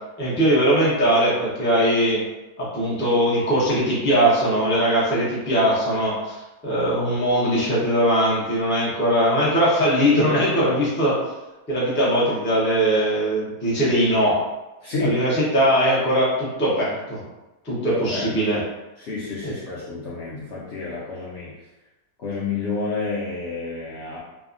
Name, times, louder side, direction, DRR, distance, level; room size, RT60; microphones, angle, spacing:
voice 1, 0.2-2.2 2.6-11.2 11.7-14.4 15.0-17.2 17.6-18.6 19.4-19.5, equal, 15° left, -8 dB, 0.4 m, -20 dB
voice 2, 14.8-15.2 17.8-18.4 19.0-21.6 22.2-24.2, left 3 dB, 70° left, -6 dB, 0.6 m, -30 dB
3.2 x 2.1 x 2.4 m, 1.0 s
omnidirectional pair, 1.7 m